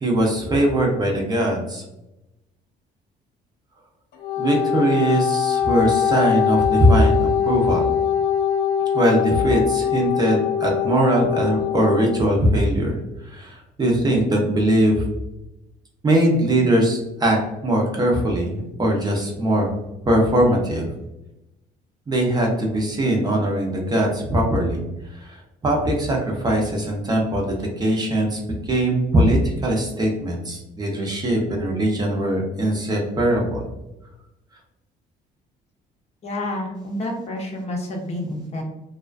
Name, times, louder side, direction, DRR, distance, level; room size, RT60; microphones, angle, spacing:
voice 1, 0.0-1.8 4.4-7.9 8.9-13.0 13.2-15.1 16.0-19.7 20.0-20.8 22.1-24.8 25.1-33.6, right 1 dB, 25° right, -1 dB, 0.6 m, -21 dB
Wind instrument woodwind instrument, 4.1-12.2, left 8 dB, 75° left, 0.5 m, -22 dB
voice 2, 36.2-38.6, left 1 dB, 40° left, 0 dB, 0.7 m, -29 dB
2.4 x 2.2 x 2.3 m, 0.92 s
cardioid pair, 110°, 17 cm